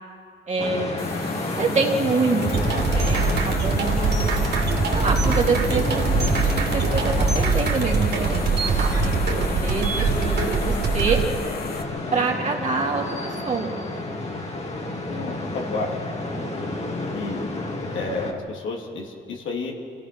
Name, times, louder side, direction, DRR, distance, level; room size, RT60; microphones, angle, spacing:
voice 1, 0.5-1.0 1.6-4.3 4.9-6.0 6.3-11.2 12.1-13.8 16.3-16.6, right 4 dB, 35° right, -2 dB, 3.2 m, -26 dB
sound 1, 0.6-18.3, left 2 dB, 35° left, 2.6 m, -30 dB
sound 2, 1.0-11.8, left 5 dB, 50° left, 1.5 m, -36 dB
sound 3, 2.4-11.3, right 4 dB, 55° right, 3.0 m, -23 dB
voice 2, 15.1-16.0 17.1-17.5 17.9-19.7, left 3 dB, 75° left, -1 dB, 2.8 m, -31 dB
26.5 x 16.5 x 6.1 m, 2.2 s
cardioid pair, 90°, 20 cm